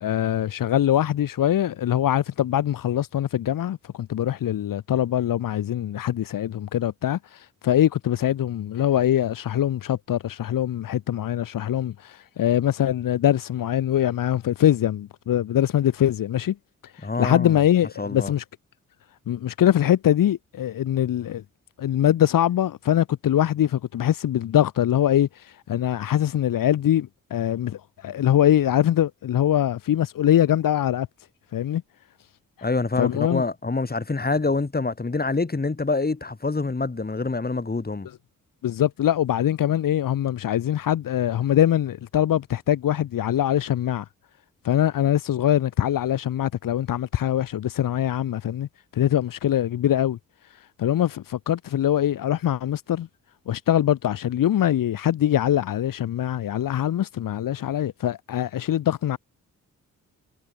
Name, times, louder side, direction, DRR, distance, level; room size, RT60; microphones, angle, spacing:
voice 1, 0.0-16.6 16.9-18.4 19.3-21.4 21.8-31.1 31.5-31.8 33.0-33.4 38.6-44.1 44.6-50.2 50.8-53.1 53.5-59.2, left 11 dB, 85° left, 2.0 m, -23 dB
voice 2, 17.0-17.6 18.0-18.3 32.6-38.1, left 3 dB, 30° left, 5.0 m, -26 dB
cardioid pair, 70°, 32 cm